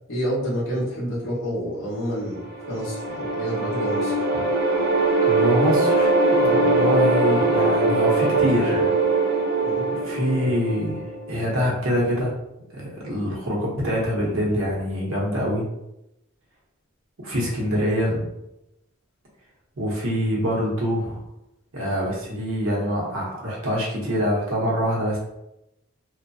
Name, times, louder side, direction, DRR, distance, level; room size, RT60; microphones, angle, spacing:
voice 1, 0.1-4.1 6.4-6.6 9.6-9.9, equal, 75° left, -7 dB, 1.3 m, -28 dB
sound 1, 2.3-11.4, right 2 dB, 45° right, 0.6 m, -22 dB
voice 2, 5.3-8.9 10.0-12.3 12.7-15.7 17.2-18.2 19.8-21.3 21.7-25.2, equal, 75° right, -3 dB, 0.9 m, -25 dB
3.0 x 2.1 x 2.6 m, 0.88 s
head